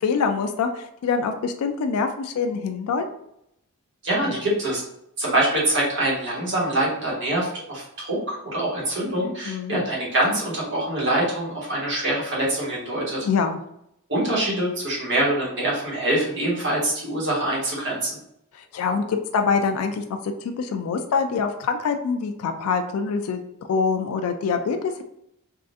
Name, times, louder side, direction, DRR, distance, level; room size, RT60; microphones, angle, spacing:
voice 1, 0.0-3.0 9.5-9.8 13.2-13.6 18.5-23.4 23.7-25.0, left 5 dB, 80° left, 6 dB, 0.3 m, -25 dB
voice 2, 4.0-4.8 5.2-13.2 14.1-18.2, right 1 dB, 55° right, -5 dB, 1.3 m, -24 dB
3.6 x 2.4 x 2.5 m, 0.78 s
head